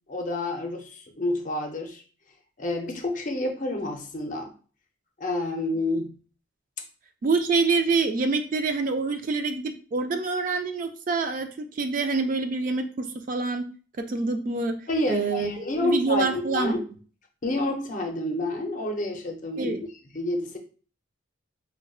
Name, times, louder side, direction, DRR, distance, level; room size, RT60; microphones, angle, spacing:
voice 1, 0.1-2.0 2.6-4.5 5.2-6.1 14.9-16.8 17.4-19.8 20.1-20.6, left 2 dB, 40° left, 3 dB, 0.6 m, -29 dB
voice 2, 7.2-13.7 14.0-15.5 15.8-16.7 19.6-19.8, right 4 dB, 40° right, 7 dB, 0.3 m, -26 dB
5.0 x 2.2 x 2.3 m, 0.40 s
head